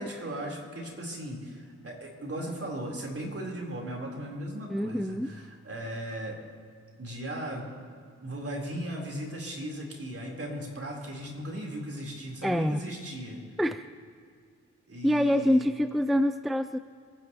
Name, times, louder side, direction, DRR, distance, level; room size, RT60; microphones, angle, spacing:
voice 1, 0.0-6.4 7.0-7.7 8.2-13.4 14.9-15.7, right 1 dB, 45° right, -2 dB, 4.2 m, -37 dB
voice 2, 4.7-5.3 12.4-12.9 13.6-13.9 15.0-16.8, equal, ahead, 11 dB, 0.5 m, -26 dB
28.0 x 10.5 x 3.1 m, 2.2 s
cardioid pair, 50°, 31 cm